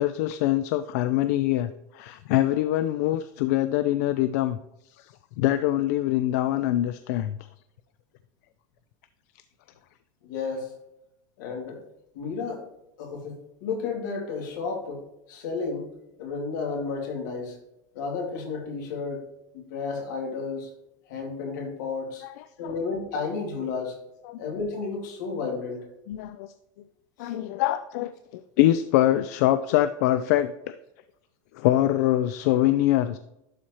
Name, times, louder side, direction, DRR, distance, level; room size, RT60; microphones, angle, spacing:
voice 1, 0.0-4.6 4.9-7.4 22.2-22.8 24.2-24.4 26.1-26.5 27.2-30.7 31.5-33.2, left 14 dB, 60° left, 12 dB, 0.4 m, -24 dB
voice 2, 10.2-10.7 11.4-11.8 12.1-12.6 13.0-15.9 16.2-17.6 17.9-19.2 19.5-20.7 21.1-22.2 22.6-24.0 24.4-25.9 27.2-27.3, left 4 dB, 80° left, 1 dB, 2.3 m, -32 dB
11.5 x 4.3 x 3.0 m, 0.87 s
supercardioid pair, 160°, 10 cm